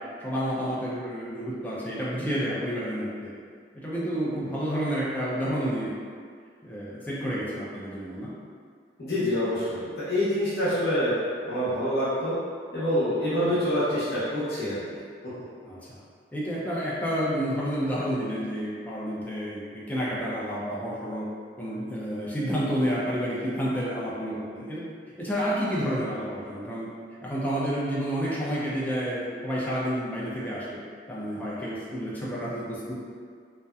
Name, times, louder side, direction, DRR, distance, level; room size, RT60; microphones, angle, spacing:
voice 1, 0.2-3.3 3.7-5.9 6.6-8.3 13.4-13.6 15.6-16.0 16.3-21.3 21.6-24.8 25.2-26.9 27.2-30.8 31.1-32.9, equal, 10° left, -8 dB, 0.4 m, -30 dB
voice 2, 9.0-11.1 11.4-12.4 12.7-14.8, equal, 65° left, -11 dB, 0.8 m, -26 dB
2.6 x 2.1 x 2.3 m, 2.1 s
head